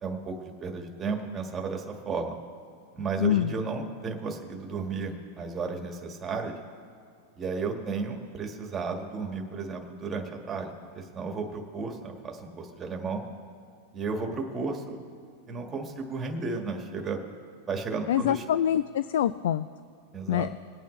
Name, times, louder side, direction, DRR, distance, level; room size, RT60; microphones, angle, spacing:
voice 1, 0.0-2.3 2.9-6.5 7.4-13.2 13.9-15.0 15.5-17.2 17.7-18.4 20.1-20.5, right 4 dB, 20° right, 2 dB, 1.6 m, -33 dB
voice 2, 3.2-3.5 18.1-19.7 20.3-20.5, left 11 dB, 80° left, 15 dB, 0.3 m, -25 dB
22.0 x 8.9 x 3.2 m, 2.4 s
supercardioid pair, 150°, 0 cm